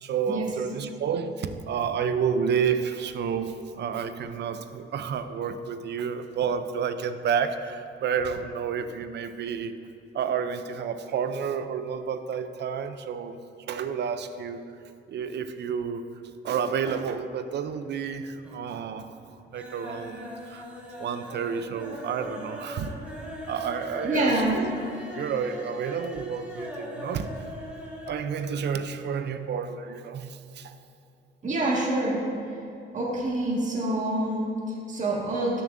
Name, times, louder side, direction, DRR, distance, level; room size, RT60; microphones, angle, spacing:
voice 1, 0.0-9.7 10.1-13.4 13.7-14.6 15.1-16.0 16.4-19.2 19.5-22.9 23.5-24.7 25.0-27.3 28.1-30.8, right 7 dB, 60° right, 0.6 m, -30 dB
sound 1, 17.5-18.1 18.4-18.9 19.2-28.3 28.5-28.6 28.9-29.0, left 1 dB, 5° right, 1.8 m, -40 dB
voice 2, 24.0-24.6 31.4-32.2 32.9-35.6, right 1 dB, 40° right, 1.9 m, -26 dB
12.5 x 6.9 x 2.6 m
cardioid pair, 90°, 20 cm